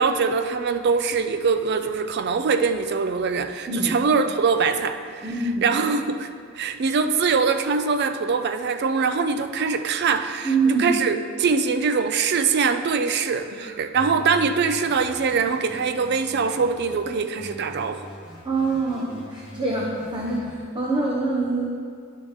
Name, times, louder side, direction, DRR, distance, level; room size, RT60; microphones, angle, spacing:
voice 1, 0.0-5.3 5.6-6.3 6.6-18.1, right 5 dB, 55° right, 9 dB, 0.4 m, -23 dB
voice 2, 5.2-5.7 10.4-10.9 13.6-13.7 17.1-17.2 18.4-21.7, right 3 dB, 25° right, -4 dB, 0.8 m, -25 dB
sound 1, 13.9-17.0 17.4-20.4, left 1 dB, 5° right, 1.9 m, -42 dB
11.0 x 5.5 x 3.5 m, 2.2 s
head